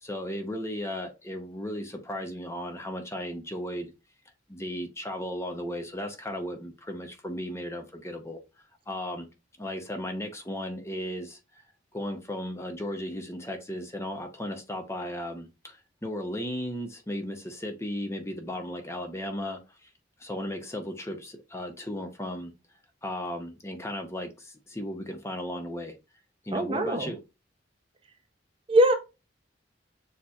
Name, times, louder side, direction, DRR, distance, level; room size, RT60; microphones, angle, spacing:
voice 1, 0.0-3.9 4.5-8.4 8.9-9.3 9.6-11.4 11.9-19.9 20.2-22.5 23.0-26.0 26.4-27.2, left 1 dB, 15° left, 0.7 m, -35 dB
voice 2, 26.5-27.1 28.7-28.9, right 1 dB, 30° right, 0.7 m, -22 dB
6.5 x 2.9 x 2.4 m
head